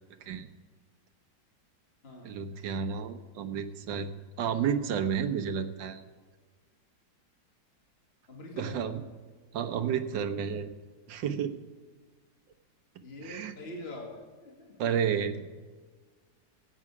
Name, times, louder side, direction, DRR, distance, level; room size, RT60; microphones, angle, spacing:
voice 1, 2.2-4.1 4.4-6.0 8.6-9.0 9.5-10.7 11.1-11.5 13.2-13.5 14.8-15.4, right 7 dB, 80° right, 9 dB, 1.6 m, -31 dB
voice 2, 8.3-8.9 13.0-14.7, left 1 dB, 35° left, -1 dB, 2.4 m, -44 dB
15.5 x 8.8 x 4.8 m, 1.4 s
omnidirectional pair, 2.0 m